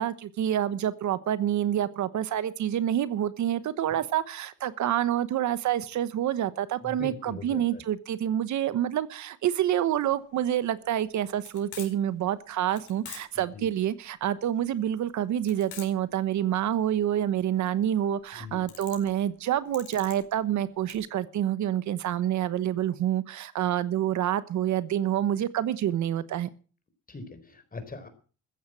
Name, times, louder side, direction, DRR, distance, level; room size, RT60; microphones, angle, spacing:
voice 1, 0.0-26.5, right 11 dB, 70° right, 15 dB, 1.1 m, -27 dB
voice 2, 6.8-7.8 13.5-13.7 18.4-18.7 27.1-28.1, left 3 dB, 30° left, 10 dB, 4.0 m, -41 dB
sound 1, 10.0-20.9, left 10 dB, 80° left, 4.4 m, -47 dB
14.5 x 9.4 x 7.6 m, 0.39 s
cardioid pair, 90°, 30 cm